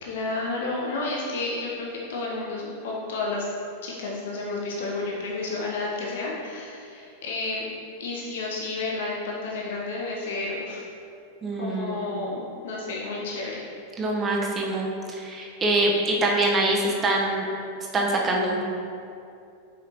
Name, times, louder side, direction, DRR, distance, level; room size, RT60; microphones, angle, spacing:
voice 1, 0.0-3.5 3.8-7.7 8.0-10.8 11.6-13.6, left 3 dB, 55° left, -3 dB, 0.8 m, -31 dB
voice 2, 11.4-12.0 14.0-17.5 17.9-18.6, right 2 dB, 20° right, -2 dB, 1.0 m, -24 dB
6.6 x 5.2 x 2.9 m, 2.5 s
figure-of-eight pair, 90°, 0 cm